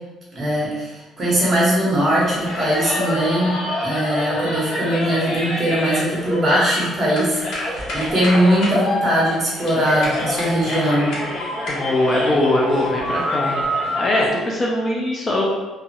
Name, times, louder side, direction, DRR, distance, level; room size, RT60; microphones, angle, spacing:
voice 1, 0.3-3.5 3.8-11.1, right 1 dB, 30° right, -6 dB, 1.0 m, -20 dB
sound 1, 2.2-14.3, left 1 dB, 65° left, 0.8 m, -26 dB
voice 2, 11.7-13.6 14.0-15.4, left 1 dB, 25° left, -3 dB, 0.4 m, -21 dB
2.9 x 2.3 x 2.8 m, 1.2 s
cardioid pair, 160°, 0 cm